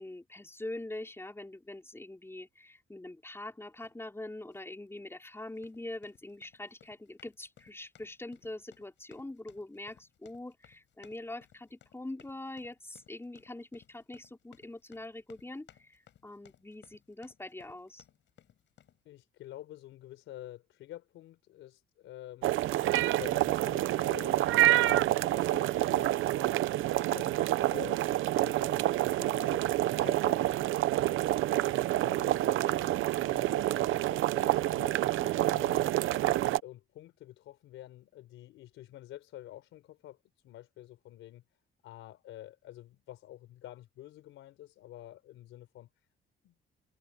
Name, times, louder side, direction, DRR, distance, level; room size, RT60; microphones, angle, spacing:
voice 1, 0.0-18.0 32.0-32.4 35.2-35.6, left 2 dB, 10° left, 4.9 m, -44 dB
sound 1, 3.8-4.0 4.5-4.7 5.5-19.0, left 10 dB, 70° left, 6.3 m, -62 dB
voice 2, 19.0-22.5 23.1-26.7 27.1-31.8 32.1-35.2 35.5-36.0 36.6-40.2 40.4-41.4 41.8-45.9 46.4-46.5, left 14 dB, 90° left, 4.0 m, -49 dB
sound 2, 22.4-36.6, right 15 dB, 80° right, 0.8 m, -28 dB
cardioid pair, 90°, 20 cm